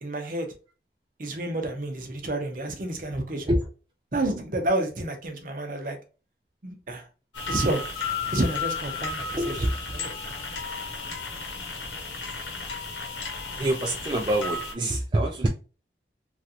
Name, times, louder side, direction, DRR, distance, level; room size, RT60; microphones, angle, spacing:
voice 1, 0.0-0.5 1.2-3.6 4.1-6.0 6.6-7.0 7.5-7.8 8.3-10.1, right 1 dB, 50° right, 0.7 m, -29 dB
sound 1, 7.3-14.7, left 4 dB, 80° left, 1.0 m, -33 dB
voice 2, 9.3-9.7 13.5-15.5, right 1 dB, 25° right, 0.3 m, -25 dB
3.1 x 2.5 x 2.8 m
head